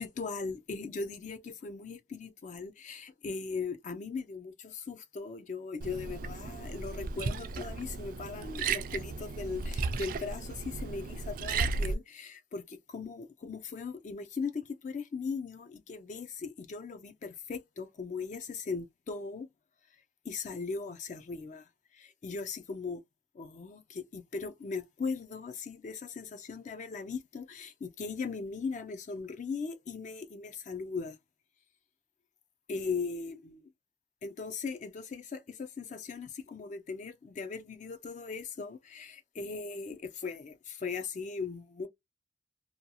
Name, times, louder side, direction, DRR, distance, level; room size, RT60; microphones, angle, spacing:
voice 1, 0.0-19.5 20.2-23.0 23.3-31.2 32.7-33.7 34.2-41.9, left 4 dB, 40° left, 0.3 m, -39 dB
Liquid, 5.8-11.9, right 4 dB, 50° right, 0.3 m, -35 dB
2.6 x 2.3 x 2.7 m
head